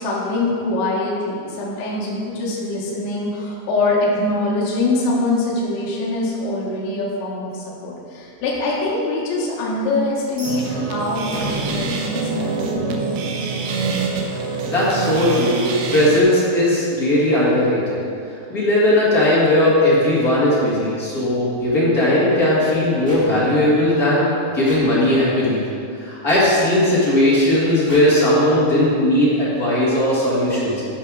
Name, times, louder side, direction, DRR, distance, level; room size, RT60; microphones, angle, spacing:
voice 1, 0.0-13.5, left 2 dB, 75° left, -5 dB, 4.0 m, -24 dB
sound 1, 10.3-13.4, equal, 55° right, 0.9 m, -32 dB
sound 2, 10.4-16.2, right 4 dB, 80° right, 2.3 m, -25 dB
voice 2, 14.7-18.0 18.5-24.3 24.5-25.6 25.9-30.8, left 1 dB, 45° left, -9 dB, 1.2 m, -17 dB
sound 3, 23.0-23.2 24.6-24.8 26.3-26.4 27.9-28.0, equal, 25° right, 2.3 m, -35 dB
13.0 x 5.8 x 5.0 m, 2.5 s
omnidirectional pair, 5.4 m